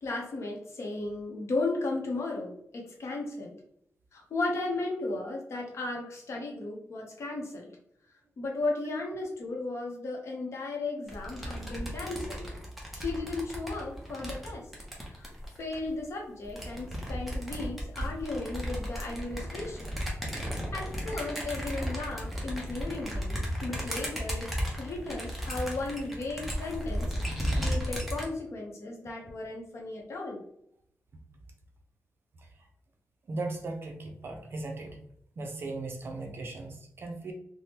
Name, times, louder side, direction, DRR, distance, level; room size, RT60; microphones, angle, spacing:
voice 1, 0.0-3.6 4.1-7.7 8.4-12.5 12.9-14.6 15.2-15.3 15.6-19.9 20.4-30.4, left 2 dB, 60° left, 0 dB, 0.7 m, -35 dB
sound 1, 11.1-15.9 16.4-28.3, equal, ahead, 0.7 m, -35 dB
voice 2, 33.3-35.0 35.4-37.3, right 2 dB, 45° right, 2 dB, 0.5 m, -37 dB
3.4 x 2.1 x 2.8 m, 0.71 s
wide cardioid pair, 160°, 5 cm